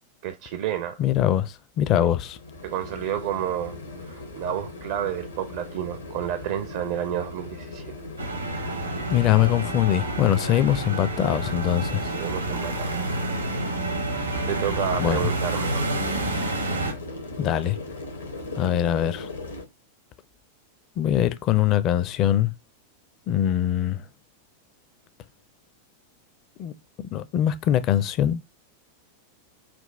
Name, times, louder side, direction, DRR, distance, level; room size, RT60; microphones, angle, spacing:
voice 1, 0.2-1.0 2.0-2.1 2.6-7.9 12.0-13.0 14.5-16.0, right 10 dB, 50° right, 0.5 m, -30 dB
voice 2, 1.0-2.4 9.1-12.1 15.0-15.3 17.4-17.8 18.6-19.3 21.0-22.5 23.3-24.0 26.6-26.7 27.1-28.4, left 11 dB, 35° left, 0.5 m, -22 dB
sound 1, 2.2-19.6, left 2 dB, 75° left, 1.0 m, -39 dB
sound 2, 8.2-16.9, right 2 dB, 80° right, 1.0 m, -29 dB
5.9 x 2.3 x 3.3 m
figure-of-eight pair, 90°, 0 cm